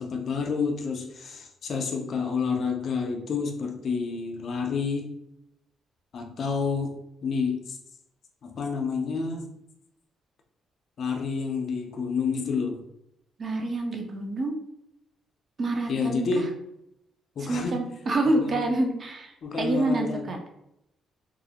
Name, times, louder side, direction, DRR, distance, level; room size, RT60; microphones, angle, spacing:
voice 1, 0.0-5.1 6.1-6.9 7.2-7.8 8.4-9.5 11.0-12.8 15.9-16.5 17.4-17.8 18.2-18.6 19.4-20.3, left 5 dB, 55° left, 3 dB, 0.5 m, -29 dB
voice 2, 13.4-14.6 15.6-16.5 17.4-20.4, right 2 dB, 45° right, 2 dB, 0.5 m, -27 dB
2.4 x 2.0 x 2.7 m, 0.81 s
cardioid pair, 90°, 0 cm